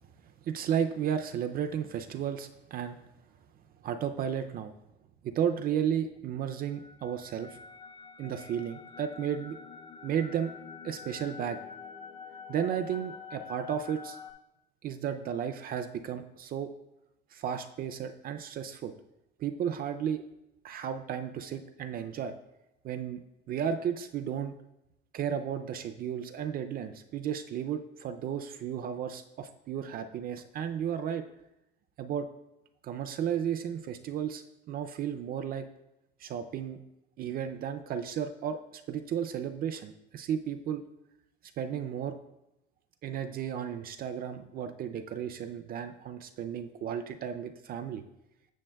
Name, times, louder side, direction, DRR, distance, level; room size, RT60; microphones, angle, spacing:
voice 1, 0.4-3.0 3.8-4.7 5.2-7.6 8.2-9.6 10.0-10.5 10.8-11.6 12.5-14.2 14.8-16.7 17.3-18.9 19.4-20.2 20.6-22.3 22.8-23.2 23.5-24.5 25.1-31.2 32.0-32.3 32.8-35.7 36.2-36.8 37.2-40.8 41.6-42.2 43.0-48.0, right 8 dB, 50° right, 8 dB, 0.4 m, -33 dB
sound 1, 6.6-14.3, left 6 dB, 25° left, 0.5 m, -47 dB
7.3 x 6.9 x 2.2 m, 0.89 s
cardioid pair, 130°, 20 cm